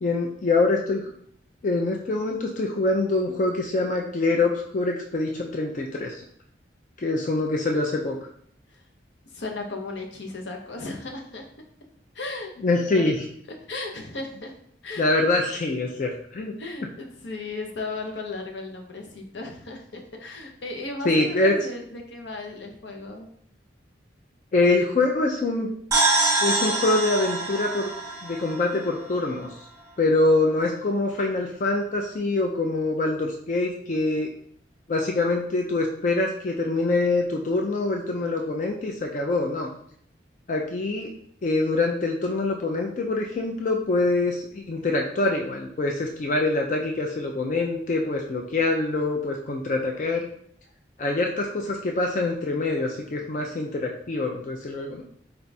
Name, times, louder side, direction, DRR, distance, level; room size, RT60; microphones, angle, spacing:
voice 1, 0.0-1.1 1.6-6.2 7.0-8.2 12.6-13.3 15.0-16.5 21.0-21.5 24.5-25.7 26.4-27.9 28.2-29.7 30.0-34.3 34.9-39.7 40.5-41.1 41.4-50.3 51.0-55.0, left 2 dB, 45° left, 1 dB, 0.4 m, -24 dB
voice 2, 9.3-11.4 12.1-13.1 13.7-14.5 14.8-15.1 16.6-23.3, left 3 dB, 80° left, 3 dB, 0.7 m, -35 dB
sound 1, 25.9-29.5, right 2 dB, 20° right, 0.9 m, -25 dB
4.4 x 2.3 x 4.0 m, 0.65 s
head